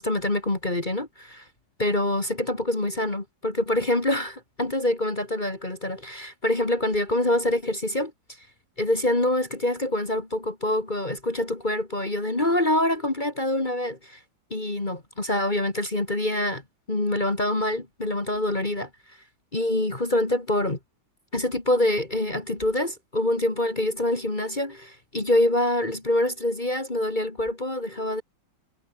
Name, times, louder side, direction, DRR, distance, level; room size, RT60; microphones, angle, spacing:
voice 1, 0.0-1.5 1.8-8.1 8.8-14.2 14.5-16.6 16.9-18.9 19.5-20.8 21.3-28.2, left 1 dB, 25° left, 2.6 m, -25 dB
omnidirectional pair, 2.0 m